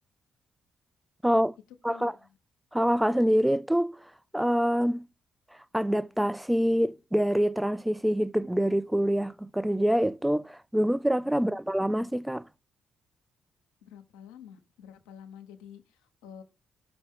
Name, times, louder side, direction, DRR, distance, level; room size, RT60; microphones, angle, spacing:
voice 1, 1.2-1.6 1.8-2.1 2.7-4.0 4.3-5.0 5.7-12.5, equal, 5° right, 0.4 m, -25 dB
voice 2, 1.9-2.3 11.3-11.5 13.8-16.4, left 8 dB, 90° left, 0.8 m, -49 dB
5.8 x 5.2 x 3.6 m
supercardioid pair, 50°, 0 cm